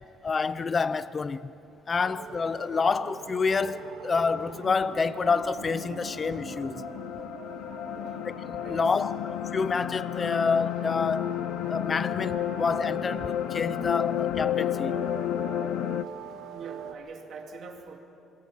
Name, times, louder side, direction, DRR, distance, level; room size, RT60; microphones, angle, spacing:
voice 1, 0.2-1.5 1.9-6.8 8.2-11.4 11.7-15.0, left 5 dB, 25° left, 0.6 m, -28 dB
sound 1, 2.0-16.9, right 6 dB, 80° right, 1.9 m, -43 dB
sound 2, 4.4-16.0, left 12 dB, 75° left, 0.5 m, -32 dB
voice 2, 7.9-8.9 16.5-18.0, right 6 dB, 50° right, 2.6 m, -43 dB
26.0 x 23.0 x 5.7 m
cardioid pair, 150°, 0 cm